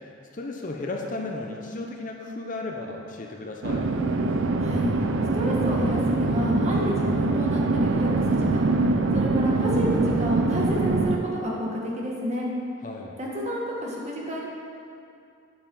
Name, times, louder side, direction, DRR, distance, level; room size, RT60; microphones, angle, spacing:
voice 1, 0.0-3.9 12.8-13.2, left 2 dB, 40° left, 1 dB, 0.7 m, -34 dB
sound 1, 3.6-11.2, right 3 dB, 65° right, 0.5 m, -23 dB
voice 2, 4.6-4.9 5.3-8.7 9.1-12.5 13.2-14.4, equal, 30° right, -3 dB, 1.5 m, -30 dB
9.2 x 8.7 x 3.9 m, 2.5 s
head